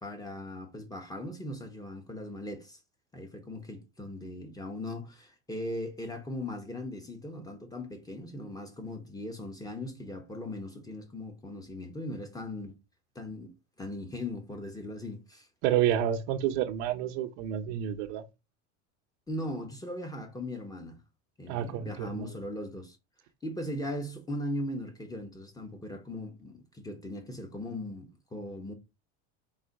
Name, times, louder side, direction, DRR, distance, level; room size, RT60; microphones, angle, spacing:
voice 1, 0.0-2.8 3.1-12.7 13.1-13.5 13.8-15.5 19.3-21.0 21.4-23.0 23.4-28.7, left 1 dB, 10° left, 1.0 m, -39 dB
voice 2, 15.6-18.2 21.5-22.3, right 10 dB, 70° right, 0.8 m, -29 dB
4.0 x 2.8 x 3.9 m
supercardioid pair, 115°, 36 cm